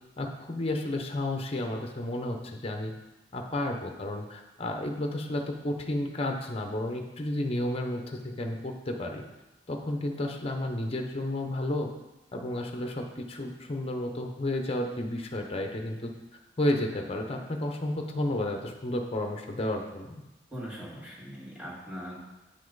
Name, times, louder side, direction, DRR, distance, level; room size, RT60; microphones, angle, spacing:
voice 1, 0.2-2.9 3.3-9.2 9.7-11.9 12.3-16.1 16.6-20.2, left 1 dB, 35° left, 3 dB, 0.8 m, -32 dB
voice 2, 20.5-22.2, equal, 5° right, -7 dB, 2.1 m, -40 dB
8.7 x 5.5 x 4.0 m, 1.0 s
head